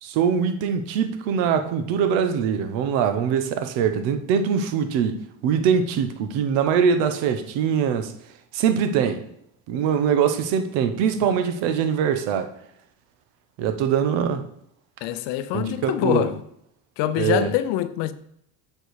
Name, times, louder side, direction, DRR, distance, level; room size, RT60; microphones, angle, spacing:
voice 1, 0.0-8.1 8.5-9.2 9.7-12.5 13.6-14.5 15.5-16.3 17.2-17.5, right 7 dB, 85° right, 1.2 m, -23 dB
voice 2, 15.0-16.4 17.0-18.1, left 12 dB, 75° left, 0.8 m, -24 dB
7.8 x 4.8 x 4.8 m
cardioid pair, 115°, 43 cm